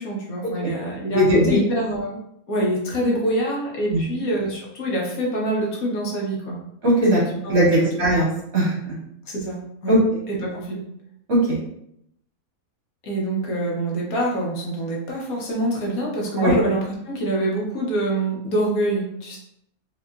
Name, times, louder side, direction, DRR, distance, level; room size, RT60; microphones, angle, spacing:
voice 1, 0.0-2.2 2.5-6.6 7.1-7.9 9.3-9.9 10.3-10.8 13.0-19.4, right 1 dB, 75° left, -2 dB, 1.3 m, -25 dB
voice 2, 1.1-1.6 3.9-4.0 6.8-7.2 7.5-8.3 8.5-8.9 9.9-10.0 11.3-11.6 16.4-16.6, right 1 dB, 50° right, -7 dB, 1.9 m, -18 dB
3.8 x 3.0 x 2.3 m, 0.75 s
omnidirectional pair, 1.5 m